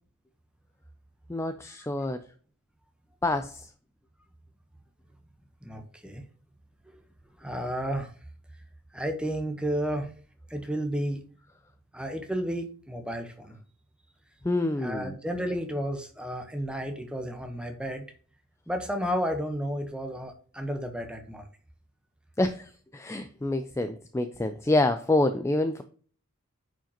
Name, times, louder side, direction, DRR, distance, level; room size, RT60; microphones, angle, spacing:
voice 1, 1.3-2.2 3.2-3.7 14.4-15.2 22.4-25.8, left 2 dB, 15° left, 0.4 m, -27 dB
voice 2, 5.6-6.2 6.9-7.0 7.4-8.1 8.9-10.1 10.5-11.2 11.9-13.6 14.8-18.1 18.7-21.5, equal, 5° right, 1.0 m, -32 dB
8.9 x 5.0 x 2.9 m
head